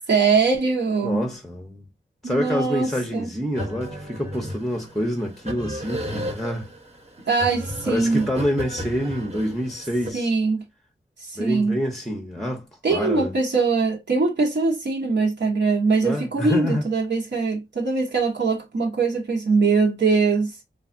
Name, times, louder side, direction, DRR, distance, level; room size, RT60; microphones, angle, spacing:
voice 1, 0.1-1.2 2.2-3.3 7.3-8.3 10.1-10.6 11.2-11.8 12.8-20.5, right 4 dB, 65° right, 0.8 m, -22 dB
voice 2, 1.0-1.9 2.2-6.7 7.8-10.3 11.4-12.6 12.9-13.3 16.0-16.8, equal, ahead, 0.7 m, -27 dB
sound 1, 3.5-10.1, equal, 35° right, 0.9 m, -34 dB
3.3 x 2.3 x 2.5 m
wide cardioid pair, 90°, 20 cm